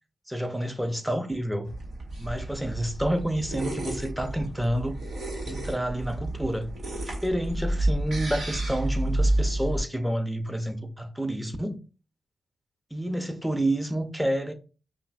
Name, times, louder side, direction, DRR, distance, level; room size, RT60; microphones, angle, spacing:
voice 1, 0.3-1.7 2.2-4.9 5.5-6.7 7.1-11.8 12.9-14.5, right 1 dB, 5° right, 0.8 m, -29 dB
sound 1, 1.6-9.8, right 1 dB, 70° right, 1.5 m, -30 dB
5.3 x 2.4 x 2.5 m
supercardioid pair, 40°, 0 cm